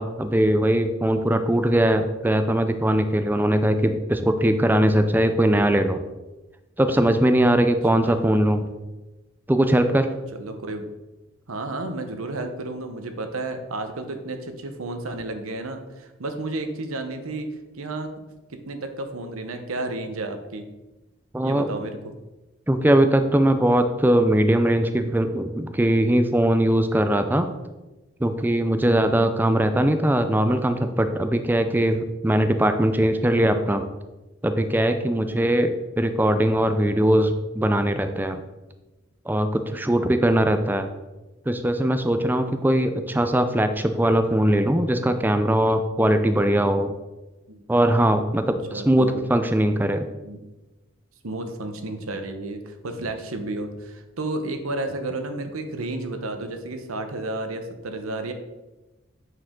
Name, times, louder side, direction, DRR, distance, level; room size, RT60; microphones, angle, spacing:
voice 1, 0.0-6.0 6.8-8.7 9.5-10.1 21.3-21.7 22.7-27.5 28.2-33.8 34.4-38.4 39.3-40.9 41.5-46.9 47.7-50.1, right 1 dB, 10° right, 8 dB, 0.4 m, -21 dB
voice 2, 10.3-10.9 11.5-17.5 17.7-18.1 18.5-20.7 21.4-22.1 28.8-29.1 33.3-33.5 35.2-35.5 47.5-47.6 48.7-49.3 50.2-50.4 51.2-58.3, right 2 dB, 90° right, 7 dB, 0.9 m, -32 dB
8.7 x 4.7 x 3.7 m, 1.1 s
head